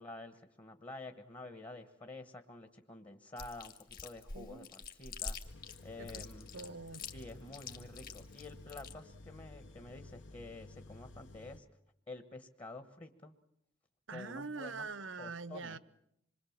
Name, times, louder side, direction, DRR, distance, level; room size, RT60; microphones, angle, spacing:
voice 1, 0.0-5.4 5.8-6.5 7.1-11.6 12.1-13.3 14.1-14.9 15.2-15.8, left 2 dB, 25° left, 1.2 m, -49 dB
Chewing mastication, 3.4-8.9, left 5 dB, 50° left, 2.1 m, -45 dB
voice 2, 4.3-4.7 6.0-7.1 14.1-15.8, right 4 dB, 90° right, 1.0 m, -44 dB
sound 1, 5.4-11.6, left 2 dB, 65° left, 1.0 m, -53 dB
26.5 x 22.5 x 7.3 m
head